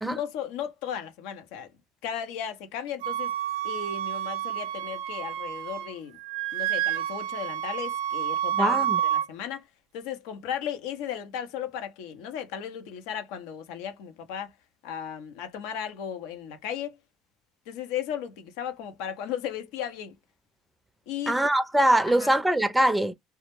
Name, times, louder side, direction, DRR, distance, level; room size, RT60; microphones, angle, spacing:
voice 1, 0.0-1.7 2.0-3.3 3.6-6.2 6.5-8.8 9.0-9.6 9.9-14.5 14.8-17.0 17.7-20.1 21.1-21.4 22.1-22.3, left 9 dB, 80° left, 0.6 m, -35 dB
Wind instrument woodwind instrument, 3.0-5.9 6.2-9.3, right 11 dB, 85° right, 0.3 m, -29 dB
voice 2, 8.5-9.0 21.3-23.1, right 1 dB, 5° right, 0.4 m, -23 dB
2.2 x 2.0 x 2.9 m
supercardioid pair, 85°, 0 cm